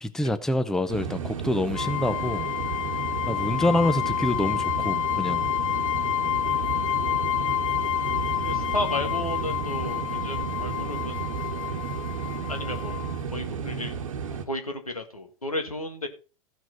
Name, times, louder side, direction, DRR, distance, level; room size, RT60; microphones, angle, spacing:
voice 1, 0.0-2.5 3.3-5.5, left 1 dB, 5° left, 0.7 m, -26 dB
sound 1, 0.9-14.5, right 6 dB, 65° right, 1.3 m, -33 dB
sound 2, 1.7-13.2, left 11 dB, 70° left, 0.7 m, -29 dB
voice 2, 8.5-11.3 12.5-13.0 13.3-13.9 14.5-16.1, left 1 dB, 90° left, 1.8 m, -33 dB
15.0 x 6.2 x 4.4 m
figure-of-eight pair, 95°, 18 cm